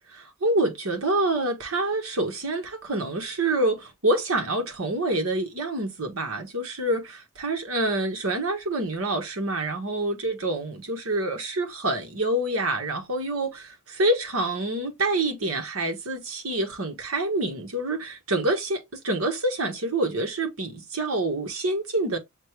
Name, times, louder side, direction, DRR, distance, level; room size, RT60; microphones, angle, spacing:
voice 1, 0.1-22.2, right 2 dB, 75° right, 1.3 m, -27 dB
6.5 x 2.2 x 3.1 m
head